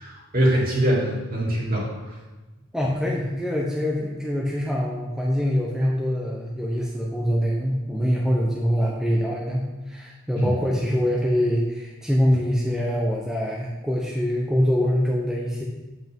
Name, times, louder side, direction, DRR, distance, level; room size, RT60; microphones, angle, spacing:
voice 1, 0.0-2.0 10.4-10.5, right 1 dB, 40° right, -4 dB, 2.6 m, -23 dB
voice 2, 2.7-15.6, equal, ahead, -3 dB, 0.8 m, -24 dB
8.3 x 8.3 x 3.6 m, 1.2 s
head